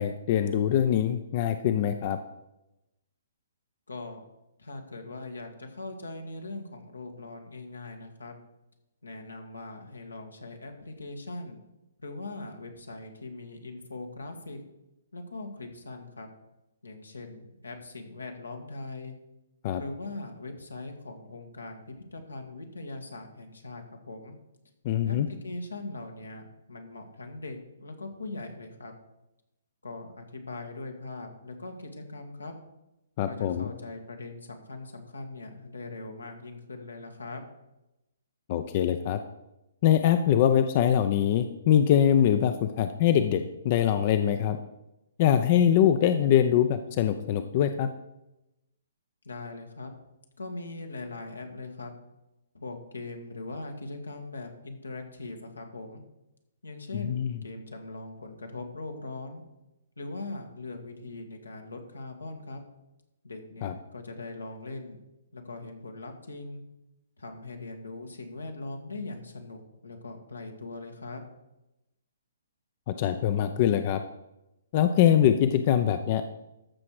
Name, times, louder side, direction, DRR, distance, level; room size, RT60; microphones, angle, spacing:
voice 1, 0.0-2.2 19.6-19.8 24.8-25.3 33.2-33.7 38.5-39.2 39.8-44.6 45.2-47.9 57.0-57.3 63.6-63.7 72.9-74.0 74.7-76.2, left 10 dB, 40° left, 9 dB, 0.6 m, -23 dB
voice 2, 3.9-4.2 4.6-8.3 9.0-11.6 12.0-14.6 15.1-16.3 16.8-19.1 19.7-24.3 25.0-28.9 29.8-32.5 33.2-37.4 49.2-49.9 50.4-51.9 52.5-56.0 56.6-59.4 60.0-62.6 63.2-65.0 65.3-66.6 67.2-71.2, left 2 dB, 90° left, 4 dB, 2.0 m, -40 dB
14.0 x 6.1 x 4.8 m, 0.92 s
figure-of-eight pair, 130°, 0 cm